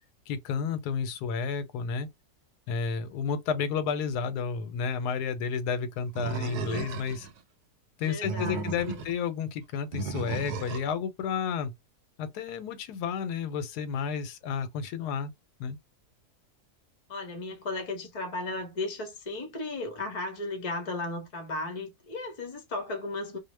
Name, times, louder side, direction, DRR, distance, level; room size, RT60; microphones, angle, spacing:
voice 1, 0.3-2.1 2.7-7.3 8.0-11.7 12.2-15.3 15.6-15.8, left 6 dB, 90° left, 1.1 m, -31 dB
Animal, 6.2-7.3 8.0-9.1 9.9-10.9, right 5 dB, 85° right, 1.1 m, -35 dB
voice 2, 8.0-9.0 17.1-23.4, left 2 dB, 40° left, 0.5 m, -35 dB
2.6 x 2.1 x 3.1 m
omnidirectional pair, 1.6 m